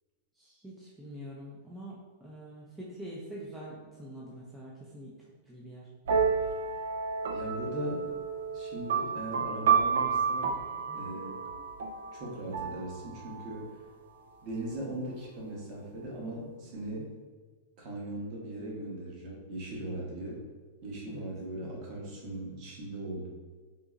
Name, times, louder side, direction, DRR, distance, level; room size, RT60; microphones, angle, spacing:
voice 1, 0.4-5.1 5.5-5.9 10.9-11.1 21.1-21.3, right 1 dB, 5° right, -5 dB, 0.4 m, -45 dB
sound 1, 6.1-13.6, right 6 dB, 75° right, 0.4 m, -31 dB
voice 2, 7.3-8.1 8.5-10.5 10.9-11.4 12.1-13.8 14.4-17.1 17.8-20.4 20.8-23.3, right 1 dB, 35° right, -3 dB, 0.9 m, -39 dB
3.7 x 2.8 x 2.4 m, 1.4 s
supercardioid pair, 165°, 0 cm